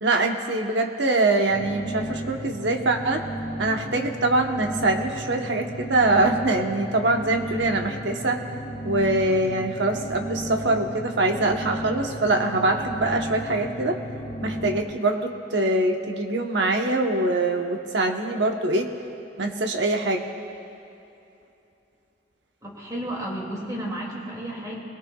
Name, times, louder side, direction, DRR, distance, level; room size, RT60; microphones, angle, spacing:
voice 1, 0.0-3.2 3.6-8.4 8.8-14.0 14.4-18.9 19.4-20.2, right 2 dB, 70° right, 3 dB, 1.1 m, -23 dB
sound 1, 1.5-14.8, equal, 55° left, 2.1 m, -34 dB
voice 2, 22.6-24.8, right 1 dB, 20° right, -3 dB, 2.4 m, -32 dB
21.0 x 18.5 x 2.4 m, 2.8 s
head